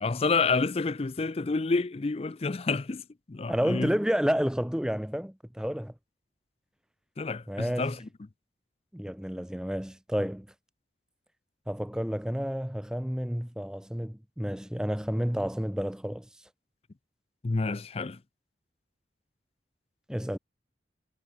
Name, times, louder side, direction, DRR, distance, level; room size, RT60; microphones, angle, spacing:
voice 1, 0.0-3.9 7.2-8.1 17.4-18.2, left 4 dB, 35° left, 0.5 m, -29 dB
voice 2, 3.5-5.9 7.5-7.9 8.9-10.5 11.7-16.3 20.1-20.4, equal, 5° right, 0.7 m, -30 dB
head